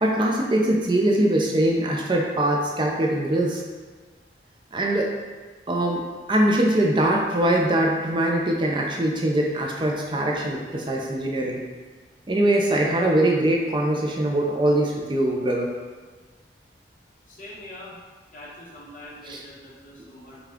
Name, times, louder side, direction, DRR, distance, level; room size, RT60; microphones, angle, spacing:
voice 1, 0.0-3.6 4.7-5.1 5.7-11.6 12.3-15.7 19.2-19.4, right 1 dB, 25° right, 0 dB, 0.4 m, -22 dB
voice 2, 17.3-18.0 18.3-20.4, left 1 dB, 45° left, -5 dB, 1.0 m, -43 dB
5.7 x 2.3 x 3.5 m, 1.4 s
head